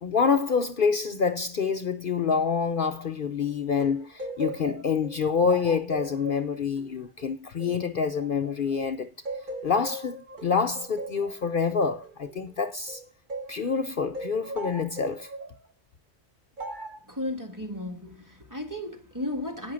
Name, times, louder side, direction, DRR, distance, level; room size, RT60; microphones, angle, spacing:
voice 1, 0.0-9.1 9.6-13.0 13.5-15.3, left 5 dB, 50° left, 0.9 m, -27 dB
sound 1, 3.8-8.8 9.3-13.6 14.1-15.6 16.6-17.0, right 2 dB, 45° right, 1.4 m, -39 dB
voice 2, 17.0-19.7, left 1 dB, 15° right, 1.4 m, -34 dB
9.3 x 6.0 x 6.3 m
omnidirectional pair, 1.2 m